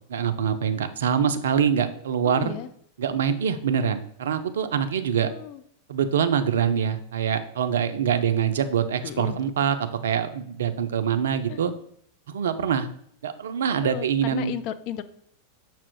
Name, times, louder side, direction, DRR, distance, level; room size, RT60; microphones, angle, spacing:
voice 1, 0.1-2.5 3.0-5.3 5.9-9.8 10.0-11.7 12.3-12.9 13.2-14.5, right 8 dB, 60° right, 10 dB, 0.4 m, -24 dB
voice 2, 2.2-2.7 5.2-5.6 9.0-9.4 11.5-11.6 13.8-15.0, left 11 dB, 45° left, 11 dB, 0.3 m, -34 dB
5.9 x 2.4 x 3.5 m, 0.66 s
figure-of-eight pair, 90°, 0 cm